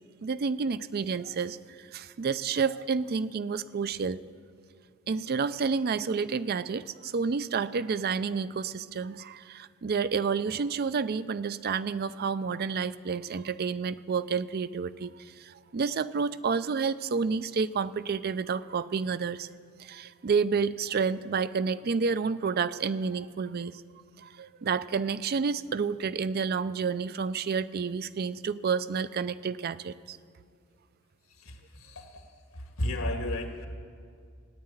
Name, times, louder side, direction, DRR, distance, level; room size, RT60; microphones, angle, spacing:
voice 1, 0.2-4.2 5.1-19.5 19.8-23.8 24.2-30.2, right 5 dB, 50° right, 14 dB, 0.4 m, -30 dB
voice 2, 31.3-32.2 32.5-33.7, left 1 dB, 80° left, 3 dB, 2.0 m, -34 dB
14.5 x 9.6 x 8.9 m, 2.3 s
head